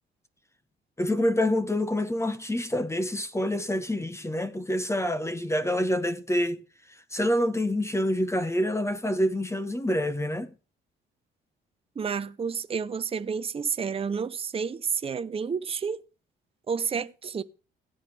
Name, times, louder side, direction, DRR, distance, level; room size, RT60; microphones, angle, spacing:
voice 1, 1.0-6.6 6.9-10.5, left 1 dB, 15° left, 1.1 m, -27 dB
voice 2, 12.0-16.0 16.7-17.4, right 6 dB, 30° right, 0.7 m, -30 dB
15.5 x 8.8 x 3.3 m
cardioid pair, 90°, 20 cm